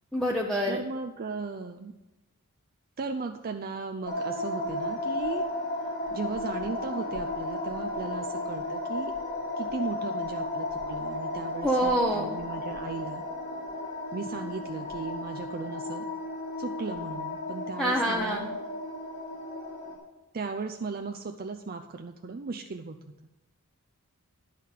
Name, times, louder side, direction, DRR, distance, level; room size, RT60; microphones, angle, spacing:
voice 1, 0.1-0.8 11.6-12.4 17.8-18.5, equal, ahead, -2 dB, 0.8 m, -26 dB
voice 2, 0.7-1.9 3.0-5.5 6.1-9.1 9.6-13.2 14.1-16.0 16.6-18.5 20.3-23.0 23.2-23.3, right 4 dB, 40° right, 5 dB, 0.5 m, -36 dB
sound 1, 4.1-20.0, left 2 dB, 50° left, 2.8 m, -34 dB
11.0 x 5.7 x 7.3 m, 1.0 s
head